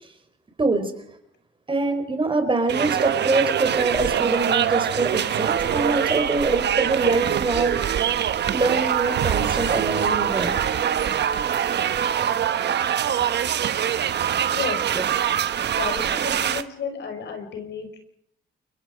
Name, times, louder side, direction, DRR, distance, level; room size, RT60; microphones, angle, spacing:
voice 1, 0.6-0.9 1.7-7.8 8.5-10.5 14.9-15.0, right 3 dB, 25° right, 7 dB, 4.8 m, -24 dB
sound 1, 2.7-16.6, right 9 dB, 60° right, 1.2 m, -23 dB
sound 2, 5.7-10.7, right 8 dB, 80° right, 3.5 m, -36 dB
voice 2, 14.5-15.0 15.8-18.0, left 6 dB, 60° left, 6 dB, 5.4 m, -32 dB
29.5 x 23.0 x 5.2 m, 0.71 s
cardioid pair, 90°, 20 cm